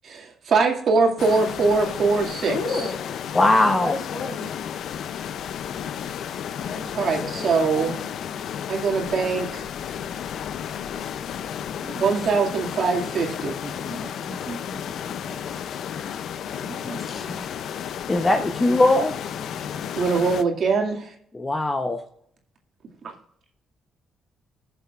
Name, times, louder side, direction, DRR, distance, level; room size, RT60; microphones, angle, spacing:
voice 1, 0.0-2.6 6.9-8.0 8.7-9.7 12.0-13.6 19.9-21.1, right 4 dB, 60° right, 1 dB, 2.2 m, -22 dB
sound 1, 1.2-20.4, left 9 dB, 70° left, 0.5 m, -33 dB
voice 2, 2.5-3.1 3.5-4.5 6.6-7.5 7.8-8.0 17.0-17.3, left 3 dB, 55° left, 2 dB, 2.1 m, -32 dB
voice 3, 3.3-3.9 18.1-19.1 21.3-22.0, left 2 dB, 20° left, 5 dB, 0.9 m, -19 dB
voice 4, 13.8-15.4 16.6-17.0 17.2-17.4, right 1 dB, 10° right, 0 dB, 2.3 m, -39 dB
19.5 x 6.9 x 2.5 m, 0.67 s
cardioid pair, 90°, 0 cm